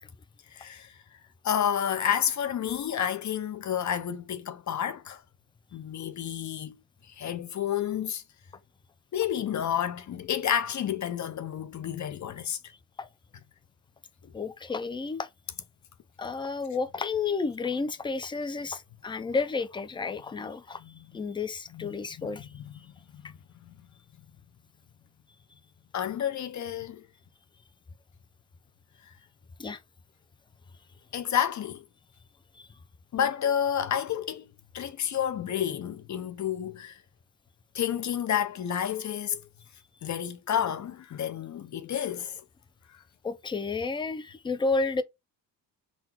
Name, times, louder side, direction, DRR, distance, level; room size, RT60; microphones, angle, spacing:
voice 1, 0.5-0.9 1.4-5.2 5.7-6.7 7.1-8.2 9.1-12.6 20.8-21.1 21.7-22.3 22.5-22.7 23.1-23.3 23.7-23.8 25.9-27.1 31.1-31.8 33.1-34.5 34.7-37.0 37.7-39.4 40.0-42.4, left 9 dB, 40° left, 0.7 m, -30 dB
voice 2, 14.3-15.3 16.2-20.8 21.1-22.5 29.6-29.8 32.6-32.7 43.2-45.0, left 4 dB, 15° left, 0.3 m, -31 dB
3.9 x 2.2 x 4.2 m
cardioid pair, 110°, 43 cm